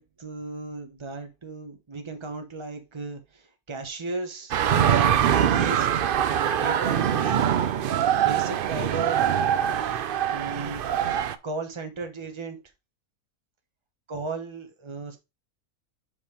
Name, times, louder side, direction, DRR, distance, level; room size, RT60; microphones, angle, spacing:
voice 1, 0.0-4.7 5.3-6.0 6.6-7.5 8.2-9.3 10.3-10.8 11.4-12.6 14.1-15.2, right 3 dB, 20° right, 1.0 m, -35 dB
sound 1, 4.5-11.4, right 9 dB, 85° right, 0.4 m, -23 dB
5.2 x 5.2 x 4.9 m
omnidirectional pair, 1.6 m